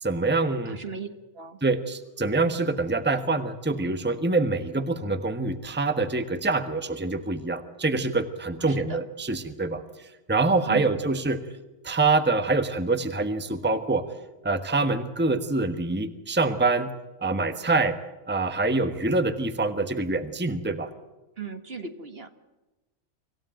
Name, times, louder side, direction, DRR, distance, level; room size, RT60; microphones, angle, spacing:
voice 1, 0.0-0.8 1.6-9.8 10.3-11.4 11.8-14.1 14.4-16.9 17.2-18.0 18.3-20.9, right 3 dB, 10° right, 9 dB, 1.3 m, -25 dB
voice 2, 0.6-1.1 1.3-1.6 8.6-9.0 10.7-11.0 21.4-22.3, right 5 dB, 50° right, 8 dB, 1.7 m, -37 dB
26.0 x 16.0 x 9.0 m, 1.1 s
omnidirectional pair, 1.4 m